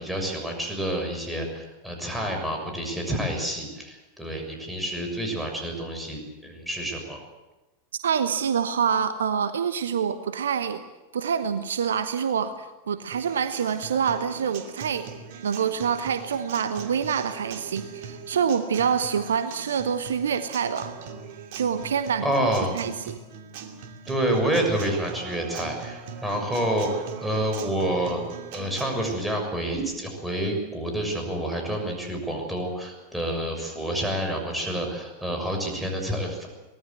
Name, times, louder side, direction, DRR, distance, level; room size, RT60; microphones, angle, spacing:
voice 1, 0.0-7.2 22.2-22.7 24.1-28.2 28.5-36.5, right 1 dB, 5° right, 2 dB, 6.6 m, -28 dB
voice 2, 8.0-10.8 11.1-15.1 15.4-20.9 21.6-22.5 22.7-23.2, right 7 dB, 65° right, 11 dB, 1.1 m, -26 dB
Acoustic guitar, 13.1-29.1, right 6 dB, 50° right, 2.6 m, -40 dB
24.0 x 19.0 x 8.0 m, 1.1 s
figure-of-eight pair, 90°, 0 cm